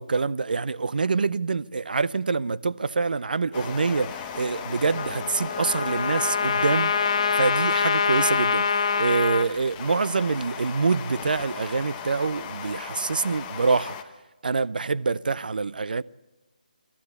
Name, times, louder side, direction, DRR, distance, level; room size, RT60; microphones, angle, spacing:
voice 1, 0.0-6.9 7.3-14.0 14.4-16.0, right 4 dB, 75° right, 0.6 m, -26 dB
sound 1, 3.5-14.0, left 7 dB, 15° left, 1.0 m, -37 dB
Trumpet, 4.9-9.5, left 6 dB, 40° left, 1.2 m, -24 dB
27.5 x 13.5 x 8.3 m
hypercardioid pair, 170°, 5 cm